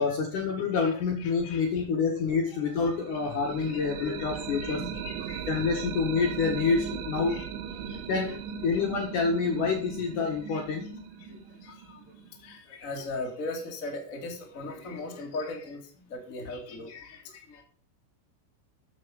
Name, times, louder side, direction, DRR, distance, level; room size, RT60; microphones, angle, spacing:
voice 1, 0.0-4.8 5.5-7.4 8.1-8.3 8.6-10.9, left 5 dB, 55° left, 2 dB, 2.4 m, -27 dB
voice 2, 0.6-1.9 2.1-2.2 2.8-4.2 4.6-5.6 7.3-8.4 8.7-8.9 9.2-9.3 10.4-10.9 11.2-17.6, left 2 dB, 35° left, 1 dB, 1.3 m, -40 dB
sound 1, 2.8-12.6, right 7 dB, 75° right, 3.4 m, -38 dB
13.5 x 7.6 x 5.3 m, 0.43 s
omnidirectional pair, 5.8 m